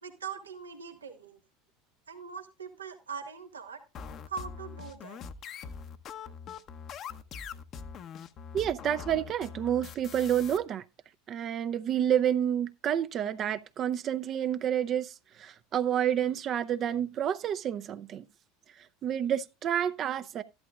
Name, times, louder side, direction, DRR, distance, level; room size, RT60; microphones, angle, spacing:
voice 1, 0.0-1.4 2.1-3.8 4.2-5.2, right 6 dB, 90° right, 1.5 m, -41 dB
sound 1, 3.9-10.6, left 6 dB, 45° left, 0.9 m, -43 dB
voice 2, 8.5-10.8 11.3-18.3 18.8-20.4, right 9 dB, 45° right, 0.6 m, -29 dB
13.0 x 11.5 x 2.4 m
hypercardioid pair, 75°, 0 cm